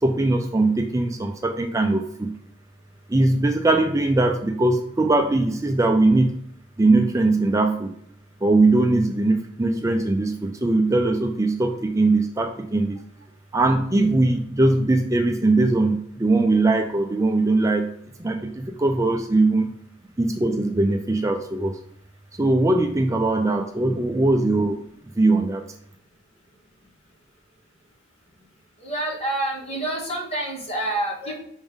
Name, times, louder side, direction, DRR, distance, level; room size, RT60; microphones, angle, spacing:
voice 1, 0.0-2.3 3.1-6.4 6.8-7.9 8.4-13.0 13.5-17.9 18.2-19.7 20.2-21.8 22.3-24.8 25.2-25.6, right 2 dB, 15° right, 4 dB, 0.4 m, -20 dB
voice 2, 28.8-31.4, right 1 dB, 35° left, -2 dB, 1.9 m, -27 dB
6.1 x 5.3 x 3.6 m, 0.71 s
head